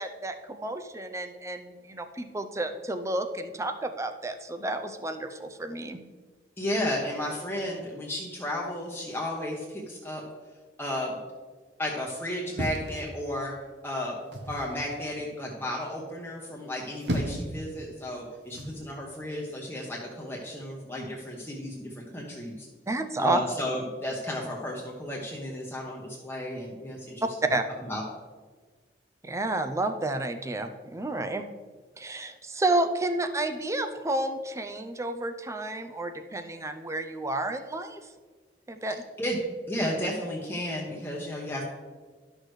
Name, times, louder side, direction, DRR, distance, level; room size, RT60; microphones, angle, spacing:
voice 1, 0.0-6.0 22.9-23.4 27.5-27.7 29.2-31.4 32.0-38.0 38.7-39.0, right 2 dB, 15° right, 8 dB, 0.5 m, -31 dB
voice 2, 6.6-10.2 10.8-11.2 11.8-13.5 13.8-14.2 14.5-22.7 23.2-27.3 27.9-28.0 39.2-39.4 39.7-41.7, left 1 dB, 15° left, -3 dB, 0.9 m, -33 dB
sound 1, 12.5-13.6 14.3-14.7 16.7-17.6 18.5-18.8, right 1 dB, 75° right, 1.0 m, -33 dB
11.5 x 6.2 x 3.2 m, 1.4 s
head